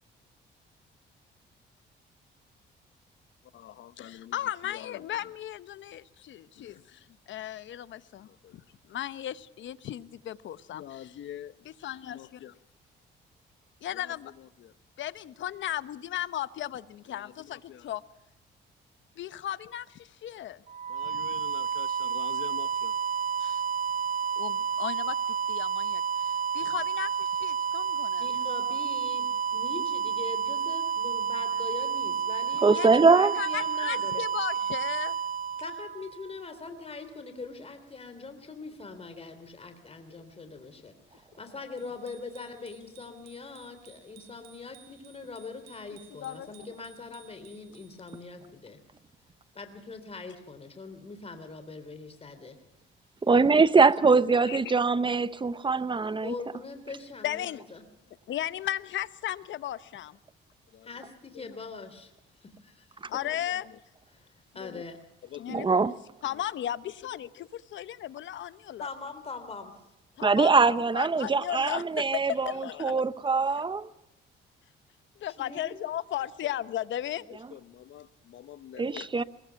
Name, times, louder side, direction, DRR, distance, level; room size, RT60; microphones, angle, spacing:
voice 1, 3.5-12.6 13.8-14.7 15.0-18.0 19.2-20.6 20.9-22.9 23.4-23.6 24.4-25.2 25.5-28.3 32.7-33.0 33.3-35.2 46.1-46.5 54.3-54.7 57.2-57.6 58.3-60.2 60.7-60.9 61.3-61.6 63.1-63.8 64.6-64.8 65.2-68.9 70.2-73.0 75.2-79.1, left 12 dB, 70° left, 0.9 m, -36 dB
sound 1, 20.7-36.5, right 7 dB, 40° right, 1.2 m, -30 dB
voice 2, 28.2-34.2 35.6-48.8 49.5-52.6 56.2-57.8 60.8-62.1 62.4-62.9 64.1-64.3 64.5-65.0 68.8-69.7 75.4-75.8, left 4 dB, 30° left, 3.2 m, -42 dB
voice 3, 32.6-33.3 53.3-56.3 65.5-65.9 70.2-73.9 78.8-79.2, right 4 dB, 25° right, 0.9 m, -23 dB
Bicycle bell, 41.8-48.4, right 10 dB, 85° right, 4.2 m, -58 dB
23.5 x 21.5 x 5.9 m
cardioid pair, 90°, 20 cm